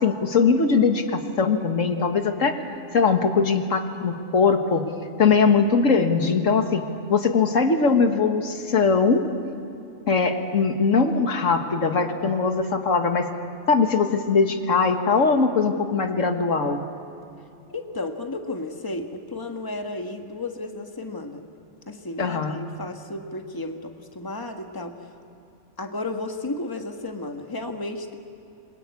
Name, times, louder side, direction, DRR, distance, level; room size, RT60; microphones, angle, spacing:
voice 1, 0.0-2.6 2.9-4.9 5.2-6.8 7.1-9.2 10.1-13.3 13.7-16.8 22.2-22.6, left 5 dB, 85° left, 6 dB, 1.9 m, -21 dB
voice 2, 17.7-21.4 21.9-25.2 25.8-28.1, left 2 dB, 15° left, 4 dB, 1.5 m, -33 dB
26.5 x 22.5 x 8.4 m, 2.7 s
omnidirectional pair, 1.3 m